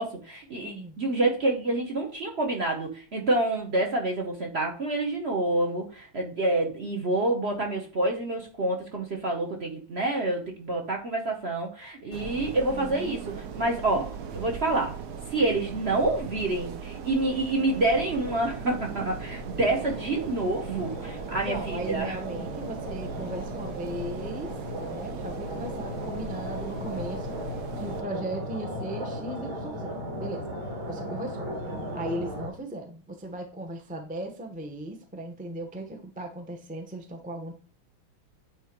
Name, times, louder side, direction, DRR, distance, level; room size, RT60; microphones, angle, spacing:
voice 1, 0.0-15.0 15.3-22.2, right 2 dB, 45° right, 1 dB, 0.9 m, -28 dB
voice 2, 0.6-1.0 12.5-13.1 21.4-27.4 27.8-30.5 30.9-31.5 31.9-37.5, right 1 dB, 10° right, 3 dB, 0.5 m, -37 dB
sound 1, 12.1-28.0, right 6 dB, 60° right, 1.2 m, -39 dB
sound 2, 17.7-32.5, equal, 90° right, 2.3 m, -37 dB
9.2 x 3.4 x 4.5 m, 0.37 s
omnidirectional pair, 2.2 m